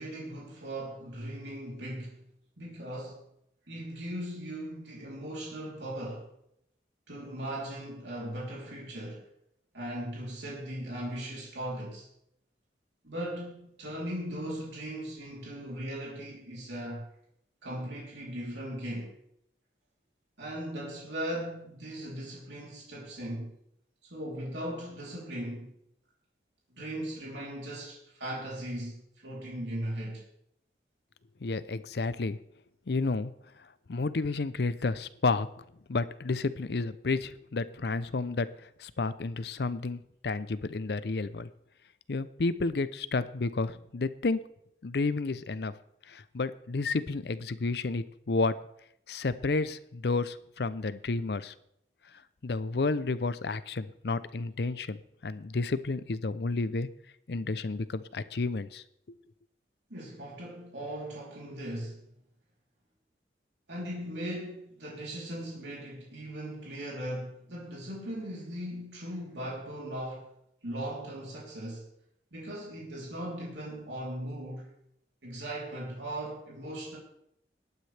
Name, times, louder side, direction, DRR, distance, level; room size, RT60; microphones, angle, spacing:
voice 1, 0.0-2.2 2.6-3.2 3.7-6.3 7.1-9.3 9.7-12.1 13.0-17.1 17.6-19.1 20.4-23.6 24.0-25.7 26.7-30.2 59.9-62.0 63.7-70.3 70.6-71.9 72.3-74.7 75.2-77.0, right 1 dB, 85° right, 3.4 m, -38 dB
voice 2, 31.4-32.4 32.9-33.3 33.9-35.5 35.9-38.5 38.8-41.5 42.1-44.4 44.8-45.7 46.1-48.6 49.1-51.5 52.4-56.9 57.3-59.2, left 3 dB, 65° left, 0.5 m, -31 dB
19.0 x 9.4 x 3.4 m
head